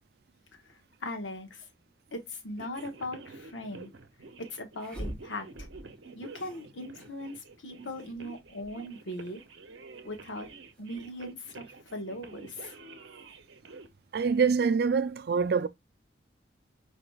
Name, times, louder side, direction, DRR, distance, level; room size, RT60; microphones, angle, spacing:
voice 1, 1.0-1.6 2.1-3.9 4.4-5.7 6.1-9.4 10.0-10.5 10.8-12.7, left 1 dB, 85° left, 1.1 m, -39 dB
sound 1, 2.6-13.9, right 3 dB, 85° right, 0.7 m, -49 dB
sound 2, 3.2-3.3 4.8-6.0 6.3-7.2 7.5-7.6 7.9-9.1 10.4-11.2, right 1 dB, 5° left, 1.4 m, -44 dB
voice 2, 14.1-15.7, right 5 dB, 55° right, 0.4 m, -25 dB
4.7 x 3.3 x 2.3 m
head